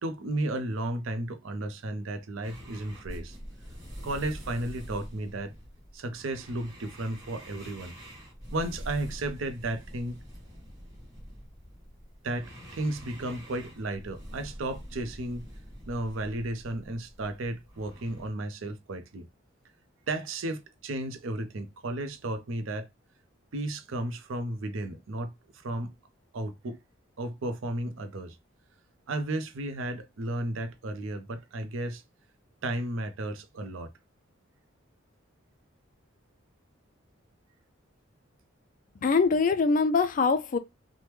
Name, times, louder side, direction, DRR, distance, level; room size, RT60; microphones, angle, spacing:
voice 1, 0.0-3.4 4.0-5.5 5.9-8.0 8.5-10.2 12.2-15.5 15.9-19.2 20.1-22.9 23.5-25.9 26.3-26.8 27.2-28.4 29.1-32.0 32.6-33.9, right 1 dB, 75° right, 0.5 m, -34 dB
sound 1, 2.4-18.3, equal, 20° right, 1.4 m, -45 dB
voice 2, 39.0-40.6, left 4 dB, 40° left, 0.3 m, -23 dB
3.0 x 2.1 x 3.3 m
head